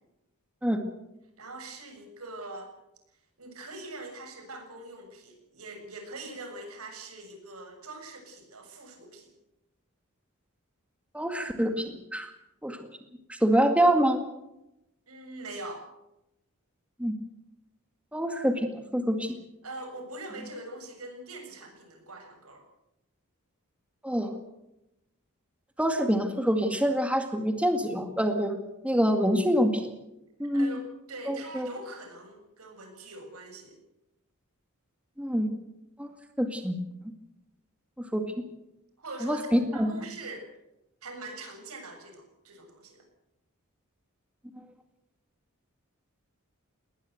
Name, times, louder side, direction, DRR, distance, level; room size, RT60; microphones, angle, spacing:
voice 1, 1.4-2.7 3.4-9.3 15.1-15.9 19.6-22.6 30.5-33.8 39.0-39.5 39.7-40.5 41.0-43.0, right 2 dB, 80° right, 4 dB, 7.1 m, -43 dB
voice 2, 11.1-12.3 12.6-12.8 13.3-14.2 17.0-17.1 18.1-19.4 24.0-24.3 25.8-28.6 28.8-29.8 30.4-30.8 31.3-31.7 35.2-35.5 36.0-36.8 38.0-38.3 39.2-39.9, equal, 5° right, 6 dB, 2.0 m, -26 dB
20.5 x 19.5 x 8.1 m, 0.89 s
head